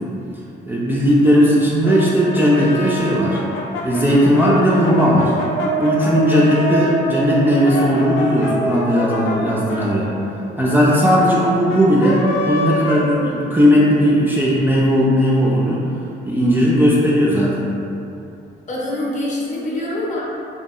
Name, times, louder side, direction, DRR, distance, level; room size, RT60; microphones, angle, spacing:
voice 1, 0.7-3.4 3.8-5.3 5.8-10.1 10.6-15.8 16.3-17.7, equal, 10° right, -7 dB, 0.3 m, -16 dB
Brass instrument, 1.8-7.0 7.5-13.8, left 2 dB, 85° left, 0.4 m, -28 dB
sound 1, 4.4-10.2, right 2 dB, 85° right, 0.7 m, -26 dB
voice 2, 18.7-20.2, left 1 dB, 40° left, -5 dB, 0.6 m, -24 dB
2.7 x 2.1 x 2.3 m, 2.7 s
cardioid pair, 90°, 20 cm